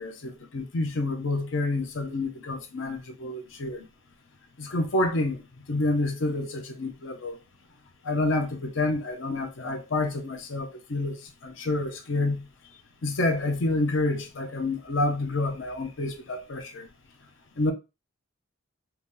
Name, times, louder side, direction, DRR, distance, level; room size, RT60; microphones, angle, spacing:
voice 1, 0.0-3.9 4.6-7.4 8.0-12.5 13.0-16.9 17.6-17.7, left 2 dB, 65° left, 0.6 m, -28 dB
2.9 x 2.8 x 3.7 m
head